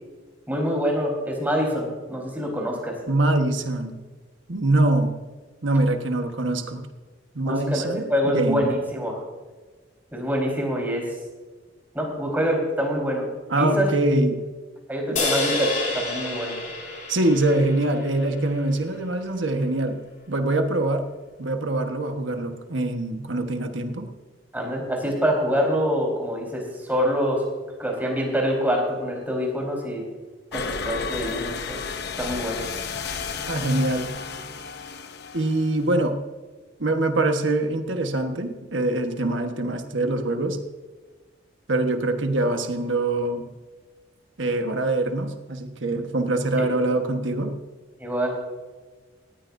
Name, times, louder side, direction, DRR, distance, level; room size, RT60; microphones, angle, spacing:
voice 1, 0.5-3.0 7.4-9.2 10.1-11.1 11.9-13.3 13.5-13.9 14.9-16.6 24.5-27.4 27.8-30.0 30.5-31.8 32.2-32.6 48.0-48.4, equal, 10° right, -1 dB, 4.3 m, -25 dB
voice 2, 3.1-4.0 4.5-5.1 5.6-6.8 7.3-8.7 13.5-14.4 15.1-15.3 17.1-20.0 20.3-21.0 21.4-24.1 33.4-34.1 35.3-36.2 36.8-40.6 41.7-43.5 44.4-47.5, right 2 dB, 75° right, 5 dB, 1.4 m, -24 dB
sound 1, 15.2-18.6, left 2 dB, 45° left, 3.2 m, -29 dB
sound 2, 30.5-36.0, left 5 dB, 60° left, 0.9 m, -33 dB
18.5 x 14.5 x 2.7 m, 1.3 s
head